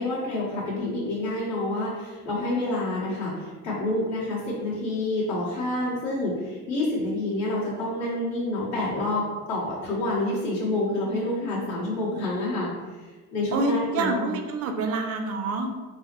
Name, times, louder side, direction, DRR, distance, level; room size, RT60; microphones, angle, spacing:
voice 1, 0.0-12.7 13.0-14.3, left 2 dB, 55° left, -8 dB, 1.5 m, -28 dB
voice 2, 13.5-15.7, right 2 dB, 45° right, 5 dB, 0.5 m, -27 dB
3.8 x 2.1 x 3.0 m, 1.3 s
cardioid pair, 125°, 33 cm